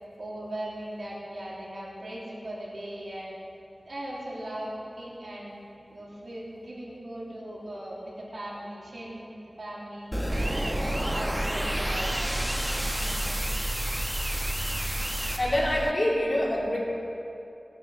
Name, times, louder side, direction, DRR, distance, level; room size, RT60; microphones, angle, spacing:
voice 1, 0.2-3.4 3.8-4.7 5.0-5.5 5.9-9.3 9.6-10.1 10.5-12.3 13.0-13.6, right 1 dB, 75° right, -6 dB, 3.4 m, -39 dB
sound 1, 10.1-15.4, equal, ahead, 1.5 m, -32 dB
sound 2, 10.3-15.9, right 1 dB, 25° right, 0.3 m, -32 dB
voice 2, 15.1-16.8, left 1 dB, 50° left, -5 dB, 3.2 m, -26 dB
17.5 x 7.9 x 5.9 m, 2.7 s
wide cardioid pair, 70°, 0 cm